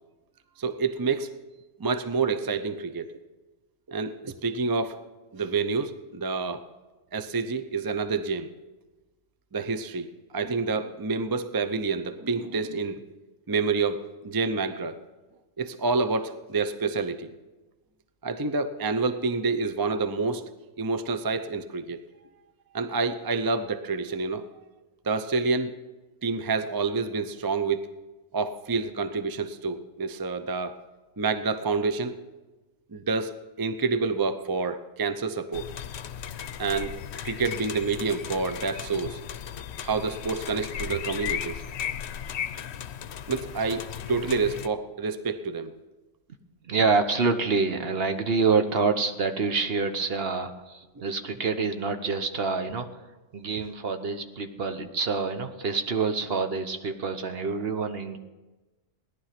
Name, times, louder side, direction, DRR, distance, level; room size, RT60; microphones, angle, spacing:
voice 1, 0.6-1.4 1.8-3.1 3.9-5.0 5.3-6.6 7.1-8.5 9.5-13.0 13.5-15.0 15.6-17.3 18.2-20.5 20.8-22.0 22.7-24.5 25.0-25.7 26.2-27.9 28.3-30.8 31.2-32.2 32.9-35.7 36.6-39.2 39.8-41.6 43.3-45.8 51.0-51.1, right 4 dB, 30° right, 9 dB, 0.4 m, -28 dB
sound 1, 35.5-44.7, left 9 dB, 65° left, 0.9 m, -36 dB
voice 2, 46.6-53.0 53.3-58.2, right 4 dB, 55° right, 7 dB, 1.2 m, -27 dB
17.5 x 11.0 x 5.8 m, 1.2 s
omnidirectional pair, 1.3 m